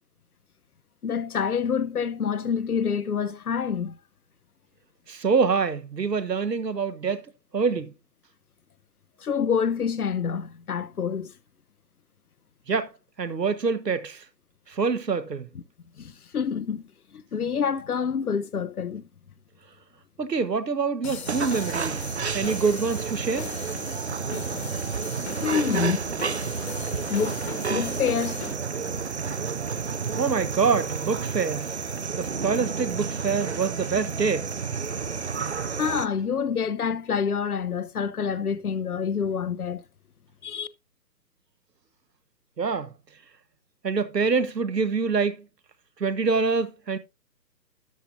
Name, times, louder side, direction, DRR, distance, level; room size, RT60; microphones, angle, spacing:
voice 1, 1.0-4.0 9.2-11.3 16.0-16.8 17.1-19.0 25.4-26.0 27.1-27.4 27.7-28.4 35.7-39.8 40.4-40.7, left 7 dB, 60° left, 0.9 m, -27 dB
voice 2, 5.1-7.3 7.5-7.9 12.7-12.9 13.2-14.2 14.7-15.5 20.2-22.1 22.3-23.5 30.2-31.7 32.1-34.5 42.6-42.9 43.8-45.4 46.0-47.0, right 5 dB, 75° right, 1.3 m, -25 dB
sound 1, 21.0-28.5, left 6 dB, 40° left, 1.4 m, -40 dB
sound 2, 21.3-36.1, right 5 dB, 45° right, 0.5 m, -31 dB
12.5 x 7.9 x 2.6 m
figure-of-eight pair, 140°, 50 cm